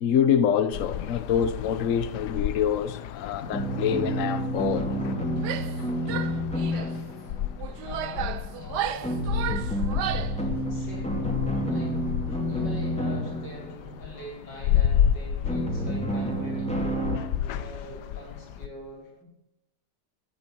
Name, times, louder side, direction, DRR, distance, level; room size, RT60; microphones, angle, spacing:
voice 1, 0.0-4.9, left 8 dB, 55° left, 1.1 m, -25 dB
sound 1, 0.7-18.7, left 10 dB, 75° left, 1.3 m, -32 dB
sound 2, 3.5-7.9 9.0-14.0 15.4-17.2, equal, 5° left, 2.3 m, -29 dB
Female speech woman speaking / Yell, 5.4-5.8 6.1-6.9 7.6-10.4, right 10 dB, 75° right, 1.3 m, -33 dB
voice 2, 7.8-9.3 10.7-11.2 11.7-12.0 12.5-17.1 17.5-19.3, left 1 dB, 90° left, 6.0 m, -42 dB
15.0 x 9.3 x 8.7 m
omnidirectional pair, 1.8 m